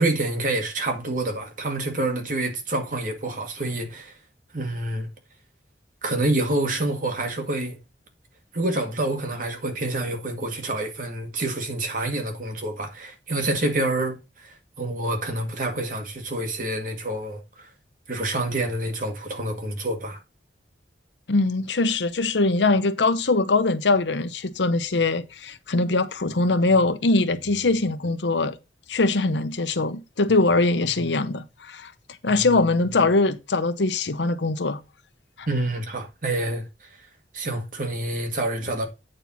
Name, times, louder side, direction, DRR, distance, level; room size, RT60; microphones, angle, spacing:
voice 1, 0.0-4.2 4.5-5.1 6.0-7.8 8.5-17.7 18.1-20.2 35.5-36.9 37.3-38.9, right 2 dB, 50° right, 1.9 m, -27 dB
voice 2, 21.3-28.6 28.9-31.9 32.2-34.8 35.4-35.5, left 3 dB, 85° left, 0.9 m, -22 dB
8.8 x 4.4 x 5.5 m
head